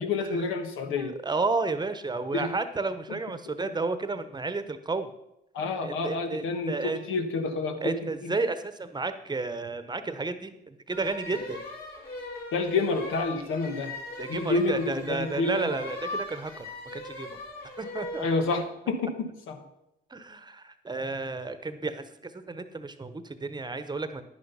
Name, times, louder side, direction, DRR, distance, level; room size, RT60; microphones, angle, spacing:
voice 1, 0.0-1.2 2.3-2.5 5.5-8.3 12.5-13.9 14.3-15.7 18.2-19.6, left 3 dB, 90° left, 6 dB, 1.4 m, -29 dB
voice 2, 1.0-5.1 5.8-7.0 7.8-11.6 14.2-16.7 16.9-17.4 17.8-18.3 20.1-24.2, right 3 dB, 20° right, 11 dB, 1.0 m, -32 dB
sound 1, 10.9-18.4, left 2 dB, 50° left, 4.4 m, -39 dB
10.5 x 9.5 x 5.6 m, 0.86 s
cardioid pair, 90°, 20 cm